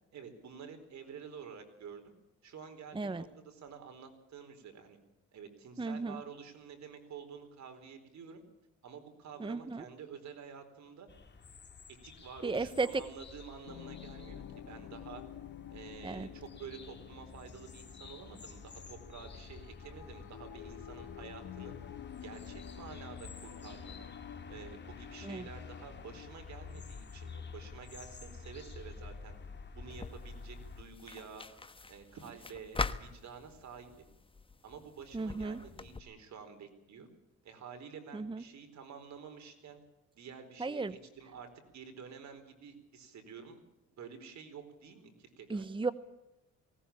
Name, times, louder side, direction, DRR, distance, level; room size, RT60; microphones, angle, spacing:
voice 1, 0.1-2.1 2.4-5.0 5.3-8.4 8.8-11.1 12.0-15.2 15.7-21.8 22.2-24.1 24.5-29.4 29.7-31.6 31.9-34.1 34.6-37.1 37.4-39.8 40.1-43.6 43.9-45.6, right 6 dB, 65° right, 7 dB, 4.4 m, -49 dB
voice 2, 2.9-3.2 5.8-6.2 9.4-9.8 12.4-13.1 16.0-16.3 25.2-25.5 35.1-35.6 38.1-38.4 40.6-41.0 45.5-45.9, right 3 dB, 15° right, 15 dB, 0.9 m, -35 dB
sound 1, 11.1-30.8, left 4 dB, 35° left, 2.8 m, -50 dB
sound 2, 13.6-26.3, left 10 dB, 70° left, 1.4 m, -50 dB
sound 3, 29.9-36.0, left 3 dB, 15° left, 1.2 m, -43 dB
19.5 x 18.0 x 8.7 m, 0.94 s
cardioid pair, 90°, 30 cm